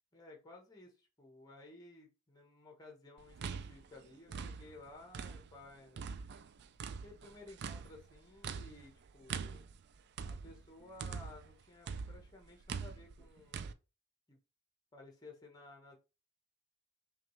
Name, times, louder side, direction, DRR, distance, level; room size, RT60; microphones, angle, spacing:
voice 1, 0.1-6.0 7.0-9.6 10.2-13.7 14.3-14.4 14.9-16.0, left 2 dB, 20° left, 2 dB, 1.0 m, -56 dB
sound 1, 3.2-5.6 6.0-11.5 11.9-13.7, right 6 dB, 50° right, 0.3 m, -44 dB
5.8 x 2.3 x 3.1 m, 0.30 s
head